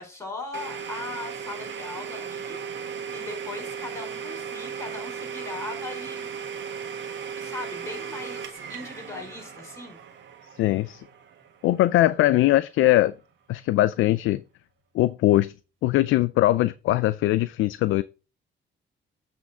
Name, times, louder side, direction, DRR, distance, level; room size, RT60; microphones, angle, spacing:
voice 1, 0.0-2.6 3.1-6.5 7.4-10.0, left 3 dB, 15° left, 4.6 m, -39 dB
Domestic sounds home sounds, 0.5-12.2, right 7 dB, 70° right, 1.5 m, -36 dB
voice 2, 10.5-11.0 11.6-13.1 13.5-14.4 14.9-15.5 15.8-18.0, left 15 dB, 80° left, 0.4 m, -21 dB
8.4 x 3.8 x 5.3 m
cardioid pair, 90°, 20 cm